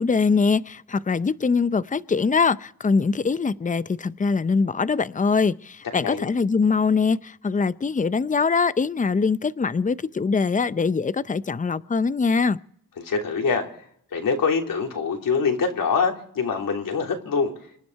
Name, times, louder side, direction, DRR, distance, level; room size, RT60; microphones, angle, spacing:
voice 1, 0.0-12.6, left 5 dB, 25° left, 0.6 m, -23 dB
voice 2, 13.0-13.6 14.1-17.5, left 5 dB, 70° left, 3.3 m, -24 dB
26.5 x 10.5 x 4.7 m
cardioid pair, 70°, 34 cm